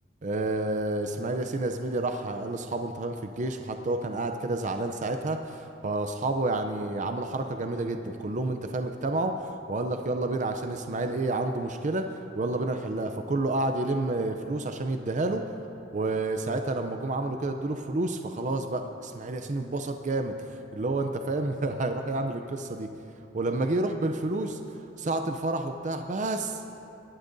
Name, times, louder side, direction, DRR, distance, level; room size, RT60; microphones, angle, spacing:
voice 1, 0.2-12.1 12.4-15.4 15.9-20.3 20.7-22.9 23.3-24.6 25.0-26.6, right 2 dB, 40° right, 6 dB, 0.5 m, -29 dB
24.0 x 11.5 x 2.7 m, 2.8 s
head